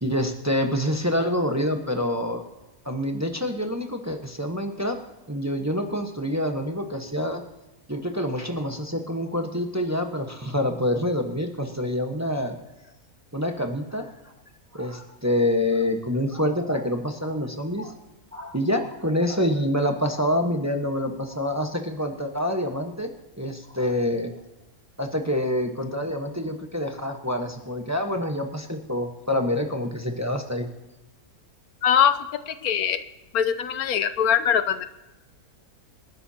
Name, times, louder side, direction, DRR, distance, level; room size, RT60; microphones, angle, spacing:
voice 1, 0.0-2.4 2.8-5.0 5.3-7.4 7.9-12.6 13.3-14.1 14.7-17.9 18.3-23.1 23.4-24.3 25.0-30.7, left 1 dB, 10° right, 3 dB, 1.1 m, -26 dB
voice 2, 31.8-33.0 33.3-34.9, left 8 dB, 75° left, 12 dB, 1.2 m, -22 dB
27.0 x 11.0 x 2.8 m, 1.0 s
omnidirectional pair, 1.6 m